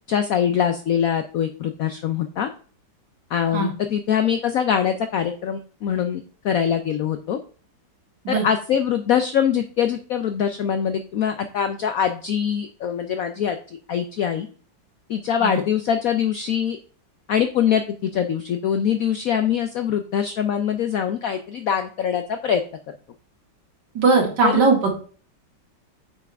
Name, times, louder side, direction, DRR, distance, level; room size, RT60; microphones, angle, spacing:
voice 1, 0.1-2.5 3.3-7.4 8.3-13.6 13.9-14.5 15.1-16.8 17.3-22.6 24.4-24.6, left 8 dB, 70° left, 8 dB, 0.8 m, -23 dB
voice 2, 23.9-24.9, right 4 dB, 65° right, 0 dB, 2.6 m, -19 dB
8.9 x 5.8 x 3.5 m, 0.41 s
omnidirectional pair, 2.1 m